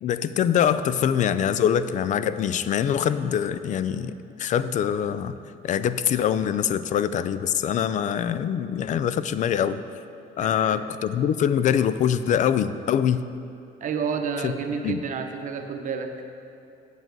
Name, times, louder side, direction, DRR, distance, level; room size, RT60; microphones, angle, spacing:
voice 1, 0.0-4.1 4.4-5.4 5.6-9.8 10.4-13.3 14.4-14.5 14.8-15.0, left 9 dB, 45° left, 13 dB, 0.4 m, -24 dB
voice 2, 10.4-10.8 13.8-16.1, right 6 dB, 50° right, 5 dB, 0.8 m, -30 dB
7.9 x 7.7 x 4.6 m, 2.7 s
cardioid pair, 110°, 17 cm